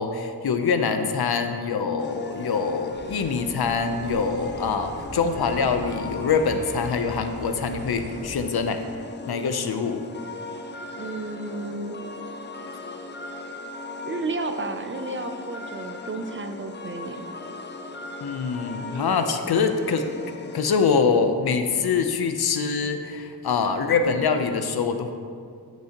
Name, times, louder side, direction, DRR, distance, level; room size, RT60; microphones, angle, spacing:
voice 1, 0.0-8.8 9.3-10.0 18.2-20.1 20.5-25.1, left 5 dB, 70° left, 7 dB, 0.7 m, -24 dB
sound 1, 2.0-21.0, left 3 dB, 30° left, 0.5 m, -38 dB
sound 2, 2.9-8.4, equal, 60° right, 2.2 m, -41 dB
voice 2, 11.0-12.0 14.1-17.3, right 2 dB, 30° right, 7 dB, 0.4 m, -32 dB
14.0 x 6.1 x 2.9 m, 2.2 s
wide cardioid pair, 155°, 39 cm